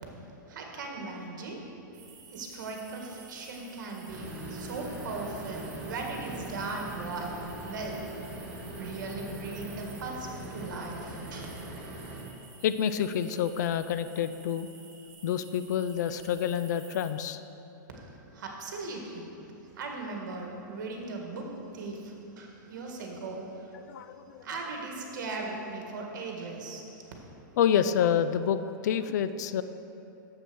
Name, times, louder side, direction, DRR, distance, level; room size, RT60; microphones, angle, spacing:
voice 1, 0.5-1.6 2.3-7.4 7.7-8.3 8.8-11.5 17.9-19.3 19.7-23.7 24.4-26.8, right 3 dB, 65° right, 1 dB, 1.8 m, -38 dB
sound 1, 1.9-17.1, right 6 dB, 35° right, 1.6 m, -53 dB
sound 2, 4.1-12.2, right 1 dB, 10° right, 2.0 m, -41 dB
voice 2, 12.6-14.7 15.2-17.4 23.9-24.4 27.6-29.6, left 8 dB, 60° left, 12 dB, 0.4 m, -28 dB
7.6 x 6.9 x 6.2 m, 2.9 s
supercardioid pair, 160°, 11 cm